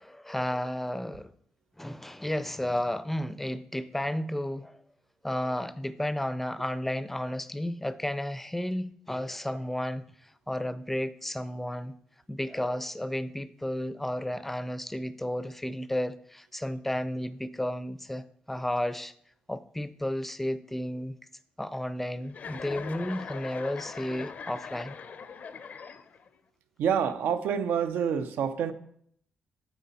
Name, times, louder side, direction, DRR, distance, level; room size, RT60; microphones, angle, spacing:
voice 1, 0.0-1.3 1.8-4.8 5.2-11.9 12.3-19.1 19.5-21.1 21.6-25.0, left 1 dB, 5° left, 0.4 m, -32 dB
Chuckle chortle, 22.3-26.4, left 6 dB, 60° left, 0.5 m, -41 dB
voice 2, 26.8-28.7, right 7 dB, 90° right, 0.5 m, -27 dB
9.2 x 4.1 x 4.1 m
cardioid pair, 85°, 3 cm